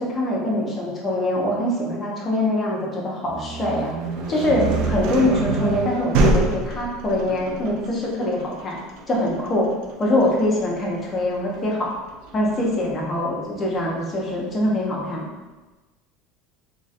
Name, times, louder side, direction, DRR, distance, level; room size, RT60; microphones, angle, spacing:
voice 1, 0.0-3.9 4.3-8.8 9.1-9.7 10.0-11.9 12.3-15.3, left 1 dB, 30° left, -3 dB, 0.9 m, -23 dB
sound 1, 3.3-13.0, right 3 dB, 65° right, 0.5 m, -26 dB
3.8 x 2.4 x 2.5 m, 1.2 s
supercardioid pair, 105°, 0 cm